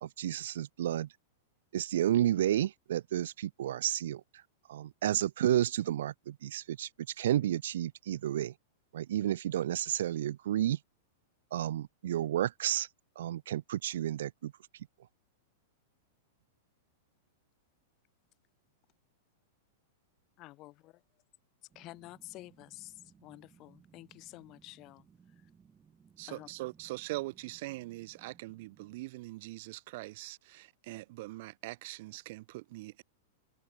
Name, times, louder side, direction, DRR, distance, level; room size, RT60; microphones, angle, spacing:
voice 1, 0.0-1.1 1.7-4.2 4.7-6.9 7.2-8.5 8.9-10.8 11.5-12.9 13.2-14.5, right 12 dB, 75° right, 0.4 m, -31 dB
voice 2, 20.4-20.9 21.7-25.1 26.3-26.5, left 19 dB, 40° left, 0.8 m, -50 dB
sound 1, 21.7-29.0, right 6 dB, 20° right, 6.4 m, -63 dB
voice 3, 26.2-33.0, right 20 dB, 60° right, 1.5 m, -42 dB
hypercardioid pair, 120°, 0 cm